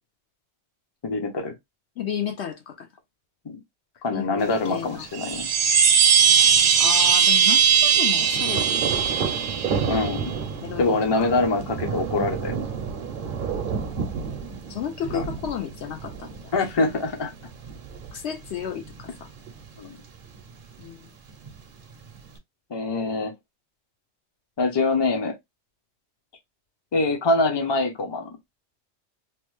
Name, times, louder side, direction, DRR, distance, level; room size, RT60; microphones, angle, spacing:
voice 1, 1.0-1.5 3.4-3.6 4.0-5.5 9.9-10.3 10.8-12.6 15.1-15.3 16.5-17.3 19.8-20.0 22.7-23.3 24.6-25.3 26.9-28.3, left 3 dB, 30° left, 0.5 m, -24 dB
voice 2, 2.0-2.9 4.1-5.1 6.8-9.4 10.6-11.3 14.7-16.5 18.1-19.3 20.8-21.1, left 9 dB, 70° left, 0.8 m, -33 dB
Thunder, 4.4-22.4, right 6 dB, 55° right, 0.7 m, -33 dB
sound 1, 5.1-10.2, right 7 dB, 75° right, 1.0 m, -19 dB
3.1 x 2.1 x 3.1 m
omnidirectional pair, 1.3 m